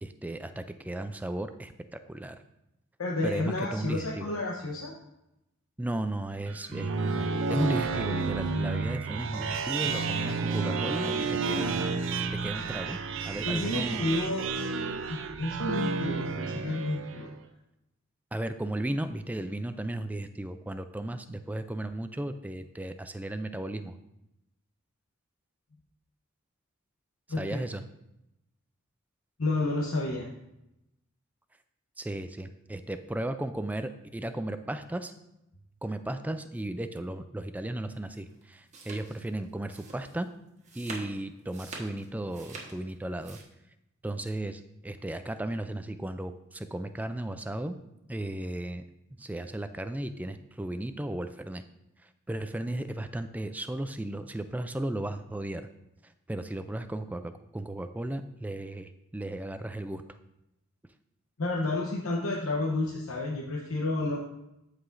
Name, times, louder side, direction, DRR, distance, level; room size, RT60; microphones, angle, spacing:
voice 1, 0.0-2.4 3.2-4.3 5.8-12.1 12.4-13.0 13.2-14.2 18.3-24.0 27.4-27.8 32.0-35.1 35.8-40.3 40.7-43.4 44.0-47.8 48.1-48.8 49.2-51.6 52.3-55.7 56.3-60.0, right 1 dB, 5° right, 9 dB, 0.3 m, -35 dB
voice 2, 3.0-4.9 13.4-14.5 15.1-17.3 27.3-27.6 29.4-30.3 61.4-64.2, left 2 dB, 85° left, -2 dB, 0.9 m, -30 dB
sound 1, 6.5-17.3, right 4 dB, 60° right, 0.5 m, -31 dB
sound 2, 38.3-43.4, right 3 dB, 35° right, 1.3 m, -45 dB
13.5 x 4.9 x 2.6 m, 0.89 s
head